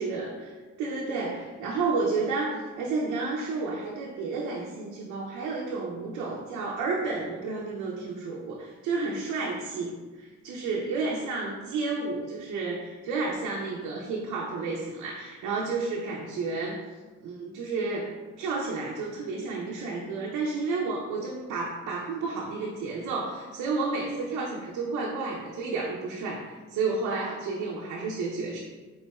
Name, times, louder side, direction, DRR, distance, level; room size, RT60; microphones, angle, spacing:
voice 1, 0.0-16.8 17.2-28.6, right 3 dB, 90° right, -2 dB, 0.6 m, -31 dB
4.2 x 3.7 x 2.2 m, 1.3 s
cardioid pair, 90°, 30 cm